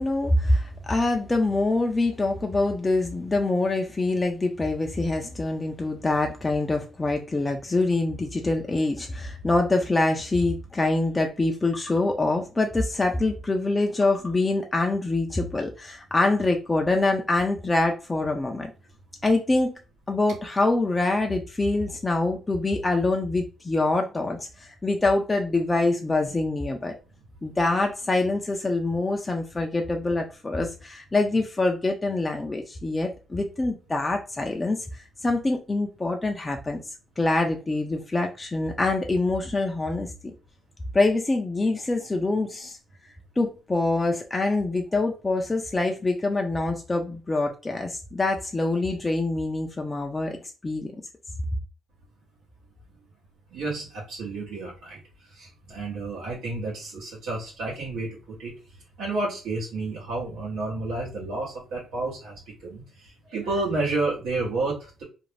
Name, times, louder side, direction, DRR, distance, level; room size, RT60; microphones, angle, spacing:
voice 1, 0.0-18.7 19.2-19.7 20.1-27.0 27.4-36.8 37.2-40.1 40.9-42.8 43.4-50.4 50.6-50.9, left 2 dB, 20° left, 0.4 m, -25 dB
voice 2, 53.5-55.0 55.3-58.5 59.0-65.0, right 2 dB, 85° right, 0.8 m, -31 dB
2.5 x 2.0 x 3.1 m
cardioid pair, 90°, 0 cm